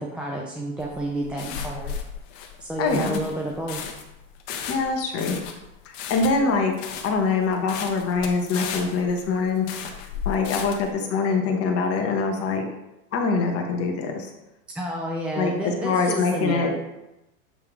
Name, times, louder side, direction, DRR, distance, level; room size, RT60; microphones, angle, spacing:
voice 1, 0.0-2.0 2.3-3.9 14.7-16.7, right 1 dB, 5° right, -3 dB, 0.3 m, -30 dB
sound 1, 0.8-10.9, left 7 dB, 60° left, 1.2 m, -35 dB
voice 2, 2.8-3.2 4.7-5.4 6.1-6.8 7.0-9.7 10.2-12.6 13.1-14.3 15.3-16.7, left 4 dB, 35° left, 3 dB, 1.2 m, -24 dB
7.8 x 3.5 x 4.6 m, 0.91 s
supercardioid pair, 135°, 42 cm